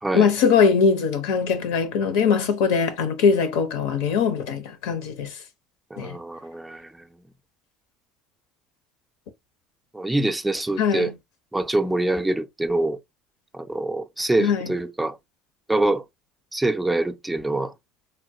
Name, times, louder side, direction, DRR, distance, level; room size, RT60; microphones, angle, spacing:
voice 1, 0.1-5.3 6.0-6.2 10.8-11.2 14.4-14.7, left 6 dB, 85° left, 0.8 m, -21 dB
voice 2, 5.9-7.1 9.9-11.1 11.5-13.0 13.5-15.2 15.7-16.0 16.5-17.7, right 2 dB, 5° right, 0.4 m, -25 dB
3.5 x 2.2 x 2.7 m
supercardioid pair, 115°, 0 cm